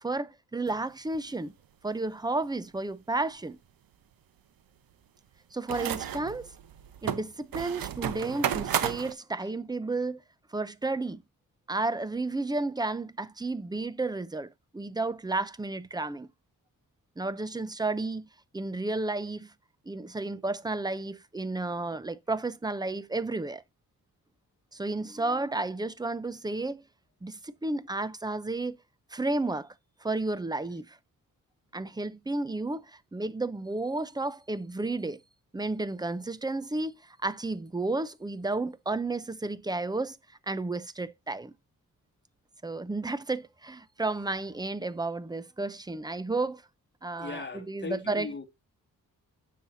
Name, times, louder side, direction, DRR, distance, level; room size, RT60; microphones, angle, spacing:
voice 1, 0.0-1.5 1.8-3.6 5.5-6.5 7.0-10.2 10.5-11.2 11.7-16.3 17.2-18.3 18.5-19.5 19.9-23.6 24.7-26.8 27.2-28.8 29.1-29.7 30.0-31.0 31.7-35.2 35.5-40.2 40.5-41.5 42.6-46.6 47.0-48.3, right 2 dB, 10° right, 0.6 m, -32 dB
sound 1, 0.7-0.8 1.1-1.2 5.7-9.1, right 9 dB, 80° right, 0.9 m, -32 dB
voice 2, 47.2-48.4, left 4 dB, 30° left, 1.8 m, -38 dB
9.7 x 7.5 x 2.7 m
wide cardioid pair, 140°, 34 cm